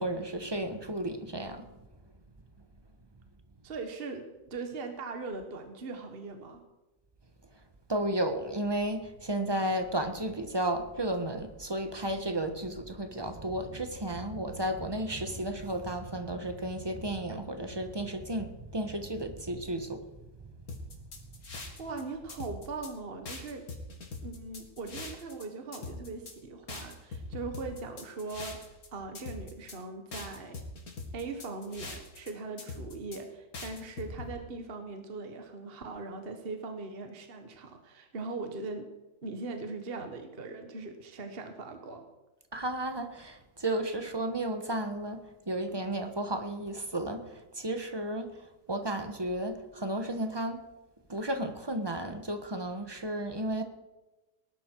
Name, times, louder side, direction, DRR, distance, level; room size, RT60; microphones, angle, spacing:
voice 1, 0.0-1.7 7.9-20.0 20.9-21.0 42.5-50.6 51.1-53.6, right 1 dB, 15° right, 7 dB, 1.2 m, -33 dB
voice 2, 3.6-6.6 21.5-23.7 24.2-30.6 31.1-38.9 39.2-42.0, right 3 dB, 35° right, 5 dB, 1.6 m, -40 dB
sound 1, 20.7-22.0 22.3-22.9 23.2-25.4 25.7-26.3 26.7-28.9 29.1-29.8 30.1-32.3 32.6-33.2 33.5-34.3, left 3 dB, 60° left, 2.6 m, -42 dB
19.5 x 11.5 x 4.7 m, 1.1 s
omnidirectional pair, 1.8 m